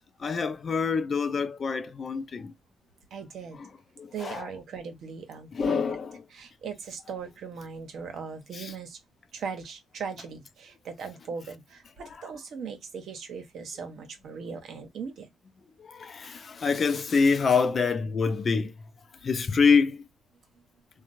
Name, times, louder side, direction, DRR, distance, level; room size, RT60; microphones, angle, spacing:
voice 1, 0.2-2.5 4.0-4.5 5.5-6.1 8.6-8.7 15.9-18.7 19.2-20.0, left 5 dB, 45° left, 0.5 m, -25 dB
voice 2, 3.1-3.6 4.1-5.8 6.3-9.0 9.3-15.3, right 6 dB, 65° right, 1.0 m, -39 dB
2.9 x 2.3 x 2.6 m
cardioid pair, 90°, 0 cm